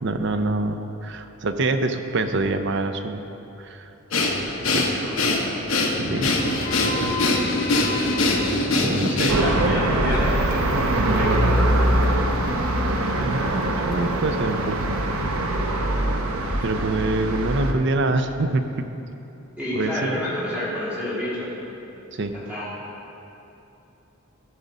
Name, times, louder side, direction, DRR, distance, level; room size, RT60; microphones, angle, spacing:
voice 1, 0.0-3.2 3.6-3.9 4.7-5.0 6.0-7.1 8.8-9.7 13.2-14.9 16.6-18.9 19.7-20.2 22.1-22.3, right 2 dB, 55° right, 8 dB, 0.5 m, -26 dB
Breathing, 4.1-9.6, left 2 dB, 70° left, 1.1 m, -23 dB
sound 1, 4.2-9.7, left 1 dB, 40° left, 0.7 m, -31 dB
voice 2, 5.0-5.5 8.9-12.1 19.6-21.5 22.5-22.7, left 1 dB, 5° right, -10 dB, 2.5 m, -29 dB
sound 2, 9.3-17.7, right 1 dB, 80° right, 0.9 m, -22 dB
14.0 x 4.9 x 5.3 m, 2.9 s
head